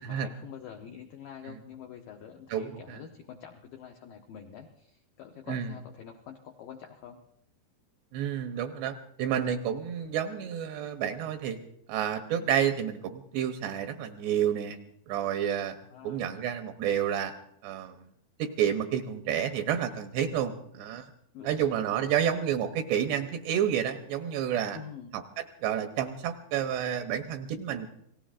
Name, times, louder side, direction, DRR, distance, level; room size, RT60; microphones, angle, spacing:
voice 1, 0.0-7.2 15.9-16.4 21.3-22.3 24.7-25.1, left 8 dB, 85° left, 3 dB, 1.9 m, -46 dB
voice 2, 2.5-3.0 5.5-5.7 8.1-11.6 11.9-14.8 15.1-15.8 16.0-17.3 17.6-18.0 18.4-21.1 21.4-24.8 25.1-25.2 25.6-27.9, right 9 dB, 80° right, 7 dB, 2.7 m, -30 dB
28.0 x 18.5 x 2.5 m, 0.74 s
omnidirectional pair, 5.2 m